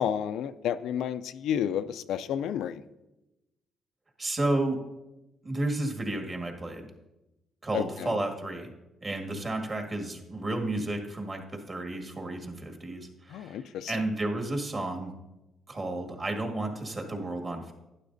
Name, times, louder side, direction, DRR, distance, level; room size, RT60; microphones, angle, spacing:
voice 1, 0.0-2.8 7.7-7.8 13.3-13.9, left 9 dB, 85° left, 12 dB, 0.3 m, -30 dB
voice 2, 4.2-4.8 5.4-6.9 7.6-8.7 9.0-15.1 15.7-17.7, right 2 dB, 35° right, 4 dB, 1.7 m, -32 dB
11.5 x 9.9 x 2.6 m, 0.97 s
cardioid pair, 90°, 0 cm